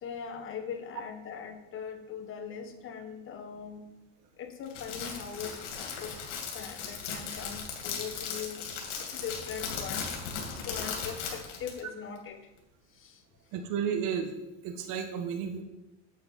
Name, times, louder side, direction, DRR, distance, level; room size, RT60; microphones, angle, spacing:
voice 1, 0.0-3.9 4.4-5.6 6.0-6.2 6.4-8.7 8.9-12.4 12.9-13.2, left 7 dB, 35° left, 6 dB, 1.3 m, -41 dB
Crackle, 4.7-11.8, left 6 dB, 85° left, 2.6 m, -37 dB
voice 2, 13.5-14.3 14.6-15.6, right 7 dB, 60° right, 5 dB, 1.4 m, -32 dB
8.7 x 8.2 x 4.2 m, 0.98 s
supercardioid pair, 125°, 35 cm